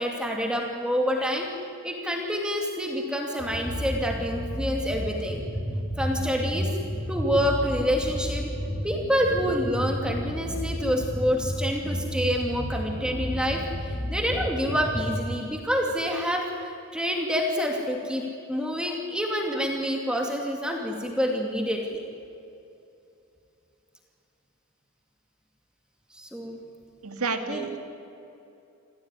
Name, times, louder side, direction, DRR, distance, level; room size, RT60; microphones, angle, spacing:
voice 1, 0.0-1.5 1.8-5.4 6.0-6.7 7.1-8.4 8.8-21.9 26.1-26.6 27.5-27.7, equal, 5° right, 1 dB, 2.6 m, -27 dB
sound 1, 3.4-15.2, equal, 40° left, 5.9 m, -32 dB
voice 2, 27.0-27.8, right 4 dB, 90° right, 6 dB, 2.4 m, -30 dB
27.0 x 16.0 x 9.9 m, 2.7 s
head